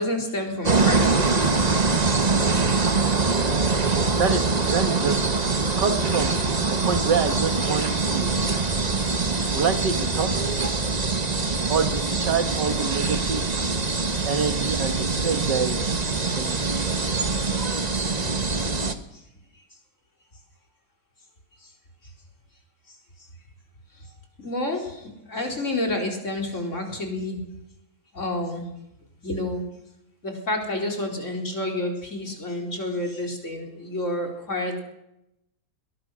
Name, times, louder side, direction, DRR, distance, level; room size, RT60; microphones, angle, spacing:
voice 1, 0.0-1.6 24.4-27.4 28.1-28.7 29.2-29.6 30.2-34.8, left 1 dB, 45° left, 1 dB, 4.4 m, -29 dB
sound 1, 0.6-18.9, right 4 dB, 25° right, 1.3 m, -23 dB
voice 2, 4.1-5.2 5.8-6.3 6.8-8.4 9.5-10.3 11.7-13.4 14.2-15.8 16.3-16.5, right 6 dB, 85° right, 8 dB, 2.2 m, -26 dB
21.5 x 19.5 x 6.3 m, 0.84 s
omnidirectional pair, 1.8 m